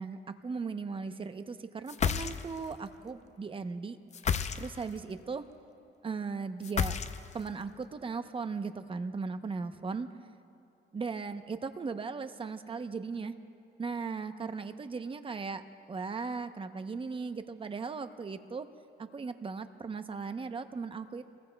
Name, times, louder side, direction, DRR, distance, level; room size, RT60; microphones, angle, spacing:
voice 1, 0.4-4.0 4.6-5.4 6.0-7.0 7.3-10.1 10.9-13.3 13.8-15.6 15.9-18.7 19.0-21.2, right 4 dB, 30° right, 9 dB, 0.8 m, -37 dB
sound 1, 1.9-2.7 4.1-5.0 6.6-7.5, left 7 dB, 40° left, 0.6 m, -31 dB
27.5 x 21.0 x 2.3 m, 2.6 s
cardioid pair, 115°, 19 cm